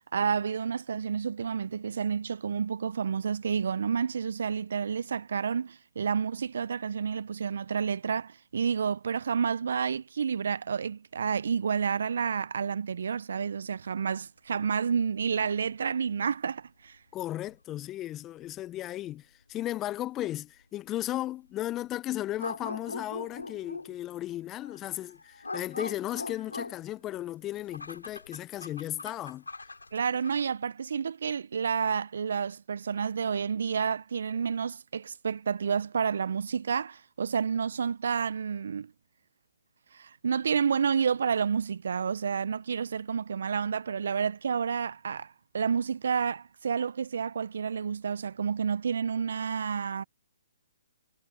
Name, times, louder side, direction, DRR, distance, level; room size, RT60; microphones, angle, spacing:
voice 1, 0.1-17.0 29.9-38.9 39.9-50.0, right 6 dB, 65° right, 1.1 m, -30 dB
voice 2, 17.1-29.4, left 14 dB, 20° left, 1.0 m, -35 dB
sound 1, 17.5-17.6 18.5-18.6 22.4-24.0 24.6-30.4, left 3 dB, 85° left, 3.8 m, -41 dB
figure-of-eight pair, 130°, 0 cm